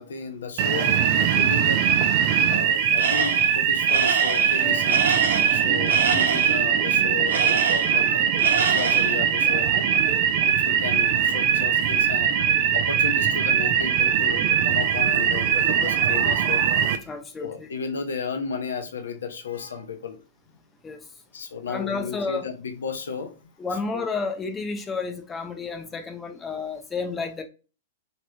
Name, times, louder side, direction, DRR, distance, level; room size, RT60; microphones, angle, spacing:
voice 1, 0.0-2.0 2.5-5.0 5.5-9.7 10.4-16.7 17.4-20.2 21.3-23.3 23.9-24.1, left 5 dB, 80° left, 0.8 m, -34 dB
sound 1, 0.6-17.0, right 8 dB, 50° right, 0.5 m, -21 dB
Tools, 3.0-3.5 3.9-6.6 7.3-8.1 8.4-9.2, right 5 dB, 85° right, 0.7 m, -27 dB
sound 2, 4.6-18.7, right 7 dB, 30° right, 1.4 m, -45 dB
voice 2, 17.0-17.7 20.8-21.1 21.7-22.5 23.6-27.4, left 4 dB, 15° left, 0.7 m, -31 dB
3.0 x 3.0 x 2.3 m
hypercardioid pair, 125°, 0 cm